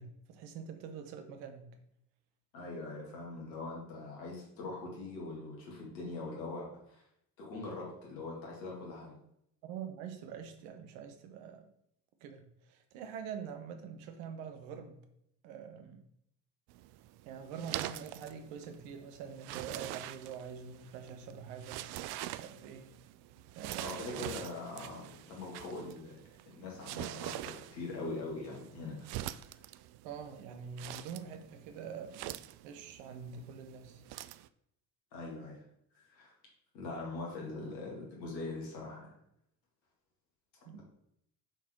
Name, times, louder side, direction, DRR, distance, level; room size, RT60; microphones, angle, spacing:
voice 1, 0.0-1.8 9.6-11.7 12.2-15.0 15.4-16.0 17.2-21.9 22.3-22.9 23.5-24.3 30.0-32.3 32.6-34.0 40.6-40.8, right 7 dB, 75° right, 7 dB, 1.2 m, -45 dB
voice 2, 2.5-7.0 7.4-9.1 23.8-26.2 26.5-29.1 35.1-35.6 35.9-36.3 36.7-39.2 40.7-40.8, left 3 dB, 80° left, -3 dB, 2.5 m, -42 dB
sound 1, 16.7-34.5, right 14 dB, 55° right, 0.5 m, -45 dB
6.8 x 4.1 x 4.5 m, 0.75 s
hypercardioid pair, 55°, 50 cm